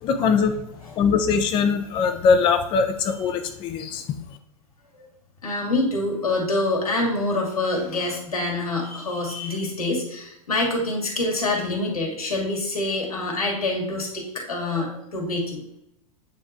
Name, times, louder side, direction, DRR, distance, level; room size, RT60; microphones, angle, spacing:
voice 1, 0.0-0.6 0.9-4.1, left 5 dB, 25° left, 7 dB, 0.5 m, -21 dB
voice 2, 5.4-15.6, left 2 dB, 80° left, -1 dB, 2.1 m, -26 dB
8.9 x 3.4 x 3.5 m, 0.82 s
figure-of-eight pair, 95°, 18 cm